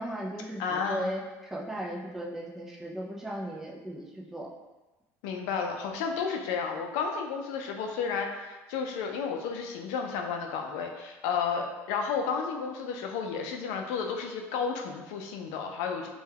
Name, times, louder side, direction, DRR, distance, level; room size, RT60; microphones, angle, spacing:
voice 1, 0.0-4.5, equal, 5° right, -3 dB, 0.3 m, -36 dB
voice 2, 0.6-1.1 5.2-16.1, left 6 dB, 85° left, 3 dB, 0.4 m, -32 dB
2.2 x 2.2 x 3.3 m, 1.1 s
cardioid pair, 140°, 7 cm